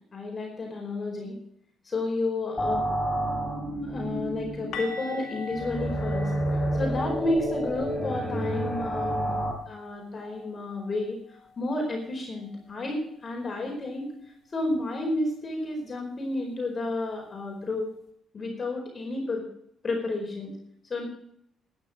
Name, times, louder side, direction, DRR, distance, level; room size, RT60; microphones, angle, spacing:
voice 1, 0.1-1.4 1.8-2.8 3.8-6.3 6.7-9.3 9.7-11.2 11.6-14.1 14.5-17.9 18.3-19.4 19.8-20.6 20.9-21.1, left 2 dB, 35° left, 0 dB, 4.7 m, -31 dB
sound 1, 2.6-9.5, right 1 dB, 15° left, 4.6 m, -29 dB
sound 2, 4.7-10.5 10.8-11.0 11.3-11.5 14.7-14.8, left 3 dB, 80° left, 2.8 m, -43 dB
13.0 x 9.8 x 6.2 m, 0.70 s
cardioid pair, 90°, 0 cm